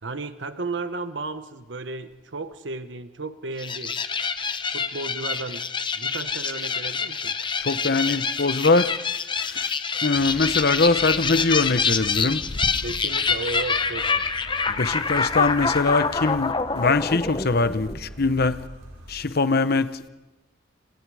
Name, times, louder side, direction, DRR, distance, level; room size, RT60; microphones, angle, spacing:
voice 1, 0.0-4.0 4.7-5.6 5.9-7.4 12.8-14.3, right 3 dB, 65° right, 1.2 m, -34 dB
sound 1, 3.6-18.2, left 5 dB, 25° left, 0.9 m, -26 dB
voice 2, 7.6-8.9 9.4-9.7 10.0-12.4 14.8-18.6 19.1-20.1, left 3 dB, 50° left, 1.0 m, -22 dB
sound 2, 10.1-19.1, equal, 80° right, 5.9 m, -44 dB
30.0 x 26.5 x 4.9 m
head